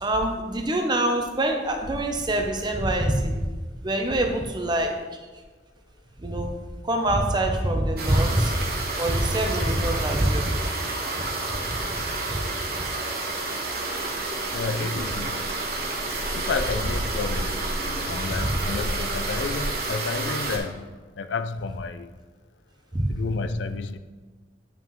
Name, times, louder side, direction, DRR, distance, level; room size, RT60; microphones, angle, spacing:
voice 1, 0.0-3.4 3.8-5.3 6.2-6.5 6.8-8.5 9.0-10.6 11.2-11.3 11.7-11.8 12.3-12.4 18.4-18.5 22.9-23.1, right 1 dB, 25° right, 3 dB, 0.7 m, -24 dB
sound 1, 8.0-20.6, right 2 dB, 55° right, 1.2 m, -29 dB
voice 2, 14.5-15.7 16.3-17.7 18.1-20.9 21.1-22.2 23.1-24.0, left 4 dB, 80° left, 11 dB, 0.4 m, -31 dB
8.9 x 5.6 x 3.1 m, 1.3 s
head